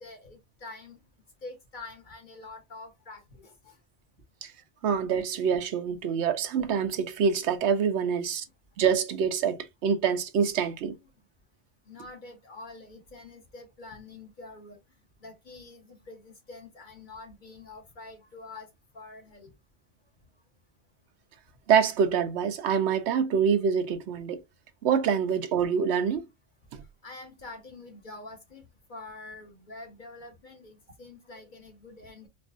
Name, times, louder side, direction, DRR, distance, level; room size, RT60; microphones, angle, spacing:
voice 1, 0.0-1.0 1.4-3.8 8.0-8.1 11.9-14.8 15.2-18.7 18.9-19.5 27.0-32.3, left 3 dB, 50° left, 1.2 m, -46 dB
voice 2, 4.8-8.4 8.8-11.0 21.7-24.4 24.8-26.3, right 7 dB, 85° right, 0.9 m, -26 dB
4.3 x 2.4 x 2.4 m
omnidirectional pair, 1.1 m